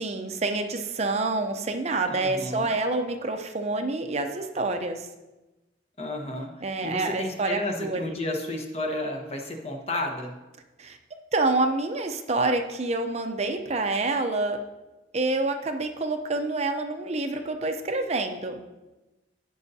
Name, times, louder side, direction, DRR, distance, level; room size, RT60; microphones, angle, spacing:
voice 1, 0.0-5.1 6.6-8.2 10.8-11.0 11.3-14.6 15.1-18.6, right 2 dB, 35° right, 5 dB, 0.6 m, -27 dB
voice 2, 2.1-2.7 6.0-6.5 6.8-10.3, left 2 dB, 35° left, 2 dB, 1.1 m, -32 dB
16.5 x 5.6 x 2.8 m, 1.1 s
head